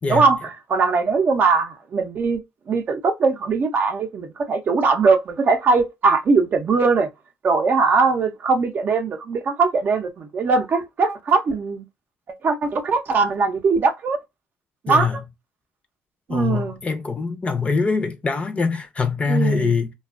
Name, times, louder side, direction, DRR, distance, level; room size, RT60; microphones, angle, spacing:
voice 1, 0.1-2.4 2.7-7.1 7.4-11.8 12.4-14.2 14.8-15.1 16.3-16.8 19.3-19.7, right 4 dB, 50° right, 0.5 m, -20 dB
voice 2, 14.9-15.2 16.3-19.9, left 4 dB, 30° left, 0.5 m, -23 dB
2.4 x 2.3 x 2.4 m
cardioid pair, 85°, 4 cm